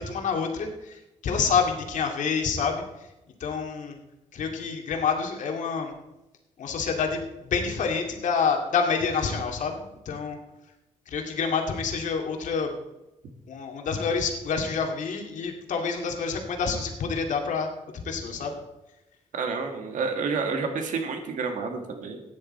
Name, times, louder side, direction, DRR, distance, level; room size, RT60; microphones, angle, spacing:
voice 1, 0.0-2.8 3.4-4.0 4.3-5.9 6.6-10.4 11.1-12.8 13.5-17.7 18.0-18.6, left 5 dB, 80° left, 3 dB, 2.2 m, -27 dB
voice 2, 19.3-22.2, right 4 dB, 85° right, 5 dB, 1.9 m, -29 dB
15.5 x 10.0 x 4.3 m, 0.95 s
wide cardioid pair, 135°, 13 cm